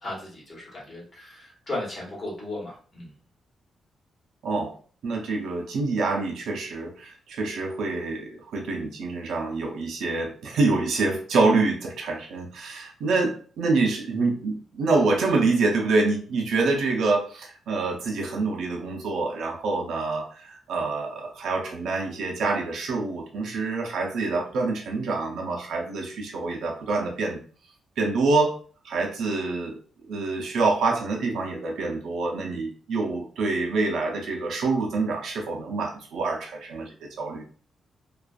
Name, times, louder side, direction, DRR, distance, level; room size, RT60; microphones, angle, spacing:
voice 1, 0.0-3.1, left 1 dB, 30° left, -4 dB, 1.2 m, -36 dB
voice 2, 4.4-4.7 5.0-27.4 28.0-28.6 28.8-29.8 30.1-37.4, right 3 dB, 80° right, 1 dB, 0.5 m, -26 dB
2.4 x 2.4 x 2.3 m, 0.42 s
cardioid pair, 130°, 0 cm